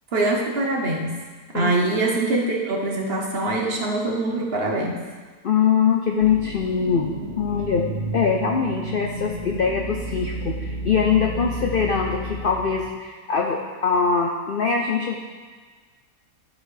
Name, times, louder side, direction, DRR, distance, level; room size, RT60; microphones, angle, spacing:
voice 1, 0.1-1.2 1.5-5.0, right 2 dB, 45° right, -1 dB, 1.0 m, -23 dB
voice 2, 5.4-7.8 8.1-15.2, left 6 dB, 70° left, 1 dB, 0.5 m, -22 dB
sound 1, 6.2-12.8, right 1 dB, 15° right, 2.1 m, -31 dB
12.0 x 4.2 x 4.9 m, 1.5 s
omnidirectional pair, 1.8 m